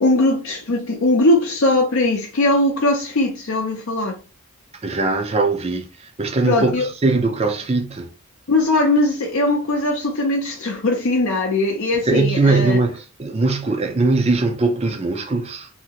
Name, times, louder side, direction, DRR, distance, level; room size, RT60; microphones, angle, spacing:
voice 1, 0.0-4.2 6.4-6.8 8.5-12.8, left 2 dB, 60° left, 0.5 m, -20 dB
voice 2, 4.8-8.1 12.0-15.7, right 3 dB, 30° right, 0.4 m, -20 dB
2.8 x 2.5 x 2.8 m
head